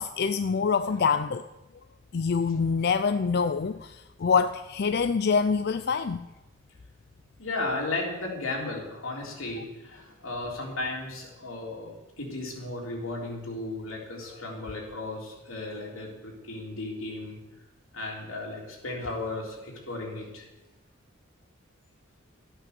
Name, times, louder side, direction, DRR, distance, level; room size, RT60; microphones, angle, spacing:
voice 1, 0.0-1.4 2.1-6.2, left 5 dB, 50° left, 11 dB, 0.4 m, -25 dB
voice 2, 7.4-17.4 17.9-20.5, left 2 dB, 85° left, -1 dB, 3.6 m, -35 dB
13.5 x 8.9 x 6.9 m, 1.0 s
head